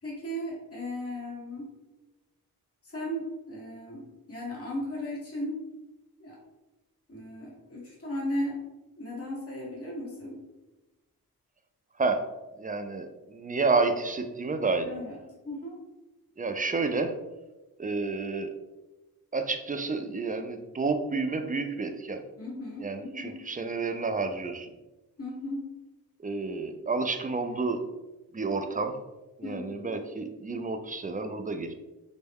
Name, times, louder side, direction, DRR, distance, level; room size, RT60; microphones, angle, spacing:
voice 1, 0.0-1.7 2.8-5.6 6.2-6.4 7.1-8.6 9.0-10.4 14.8-15.7 22.4-23.4 25.2-25.7 29.4-29.9, left 1 dB, 40° left, -5 dB, 1.3 m, -36 dB
voice 2, 12.6-14.9 16.4-17.1 17.8-18.5 19.3-22.2 22.8-24.7 26.2-27.8 28.3-28.9 29.4-31.7, right 3 dB, 25° right, 7 dB, 0.3 m, -30 dB
4.4 x 2.1 x 3.4 m, 1.1 s
cardioid pair, 65°, 37 cm